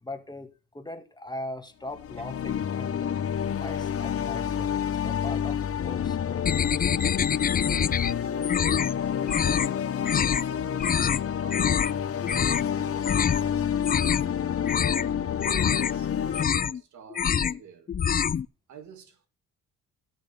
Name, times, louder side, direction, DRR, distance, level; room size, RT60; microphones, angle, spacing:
voice 1, 0.0-3.1 3.6-7.1, left 2 dB, 15° left, 1.9 m, -40 dB
sound 1, 1.9-16.4, left 8 dB, 50° left, 1.0 m, -29 dB
sound 2, 6.5-8.1 8.4-8.9 9.3-9.7 10.0-10.4 10.8-11.2 11.5-11.9 12.2-12.7 13.0-13.4 13.7-14.3 14.6-15.1 15.4-15.9 16.3-16.8 17.1-17.6 17.9-18.5, left 7 dB, 30° left, 0.5 m, -26 dB
voice 2, 8.1-12.1 12.7-13.7 14.6-17.9 18.7-19.3, right 7 dB, 70° right, 2.5 m, -49 dB
18.0 x 6.4 x 3.5 m
cardioid pair, 90°, 30 cm